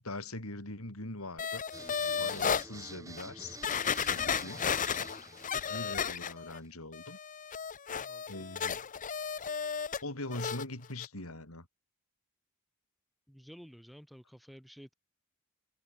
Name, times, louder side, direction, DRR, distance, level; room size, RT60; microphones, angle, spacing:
voice 1, 0.0-1.6 2.2-3.6 4.1-4.7 5.7-7.2 8.3-8.9 10.0-11.7, left 2 dB, 80° left, 5.3 m, -42 dB
sound 1, 1.4-2.6 3.2-3.3 3.6-6.6 6.9-10.0 10.3-10.6 11.0-11.1, left 7 dB, 35° left, 0.8 m, -34 dB
sound 2, 1.7-6.7, right 2 dB, 15° right, 2.1 m, -49 dB
voice 2, 13.3-14.9, equal, ahead, 1.6 m, -52 dB
head